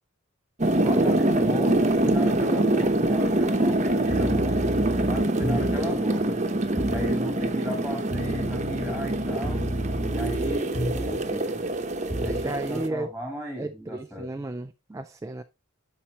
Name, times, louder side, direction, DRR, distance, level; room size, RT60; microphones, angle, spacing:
sound 1, 0.6-12.9, right 1 dB, 35° right, 0.8 m, -25 dB
voice 1, 0.8-4.6 5.0-6.4 6.9-9.6 10.1-11.6 12.2-14.3, left 1 dB, ahead, 1.7 m, -36 dB
sound 2, 4.0-5.9 6.8-7.2 8.1-11.3 12.1-12.5, equal, 20° left, 1.6 m, -31 dB
voice 2, 12.2-13.1 13.6-15.4, right 2 dB, 15° right, 0.3 m, -34 dB
11.5 x 4.3 x 2.9 m
head